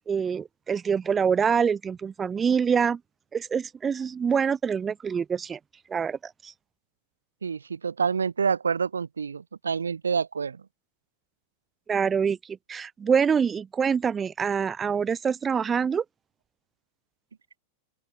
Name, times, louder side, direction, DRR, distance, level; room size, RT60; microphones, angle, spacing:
voice 1, 0.1-3.0 3.3-5.6 5.9-6.5 11.9-12.4 12.7-16.0, right 6 dB, 20° right, 0.4 m, -25 dB
voice 2, 7.4-10.6, right 6 dB, 75° right, 0.6 m, -27 dB
open air
figure-of-eight pair, 90°, 0 cm